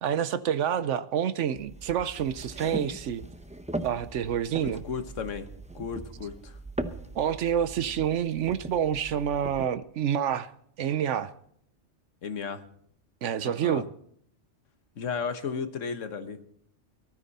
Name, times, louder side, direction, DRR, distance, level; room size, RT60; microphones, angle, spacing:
voice 1, 0.0-3.3 3.8-4.8 7.1-10.5 10.8-11.3 13.2-13.9, right 9 dB, 75° right, 15 dB, 1.0 m, -28 dB
sound 1, 1.5-9.6, right 1 dB, 5° right, 0.7 m, -40 dB
voice 2, 4.6-5.5 5.7-6.6 12.2-12.6 13.4-13.9 14.9-16.4, left 6 dB, 90° left, 9 dB, 1.6 m, -34 dB
18.5 x 13.0 x 4.2 m, 0.66 s
omnidirectional pair, 1.2 m